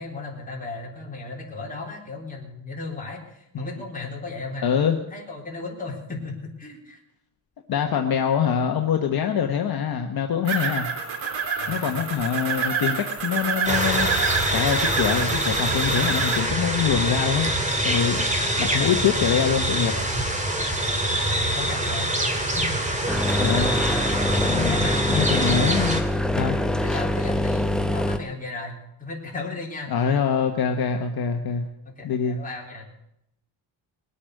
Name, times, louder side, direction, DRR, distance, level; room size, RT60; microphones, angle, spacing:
voice 1, 0.0-7.0 11.5-12.0 21.3-22.8 24.7-25.9 26.2-26.4 26.8-30.1 31.8-32.9, left 3 dB, 20° left, -2 dB, 3.6 m, -35 dB
voice 2, 4.6-5.0 7.7-10.9 11.7-17.5 17.8-18.3 18.6-19.9 23.4-23.8 24.4-26.0 26.4-26.6 29.9-31.6 32.0-32.4, left 7 dB, 55° left, 4 dB, 1.3 m, -24 dB
sound 1, 10.4-16.4, right 6 dB, 90° right, 4.4 m, -28 dB
sound 2, 13.6-26.0, right 1 dB, 15° right, 2.2 m, -25 dB
sound 3, 23.1-28.2, left 1 dB, ahead, 0.8 m, -24 dB
20.5 x 8.6 x 6.5 m, 0.82 s
cardioid pair, 130°, 45 cm